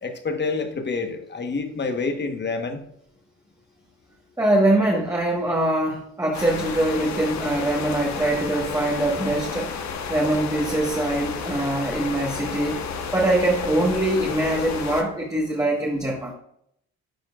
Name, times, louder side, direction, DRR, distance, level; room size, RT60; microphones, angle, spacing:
voice 1, 0.0-2.8, left 4 dB, 35° left, 6 dB, 1.2 m, -27 dB
voice 2, 4.4-9.7 10.1-12.8 13.1-16.3, right 1 dB, 10° right, -2 dB, 1.4 m, -23 dB
sound 1, 6.3-15.0, left 5 dB, 65° left, 1.1 m, -31 dB
11.5 x 4.4 x 2.4 m, 0.72 s
cardioid pair, 90°, 30 cm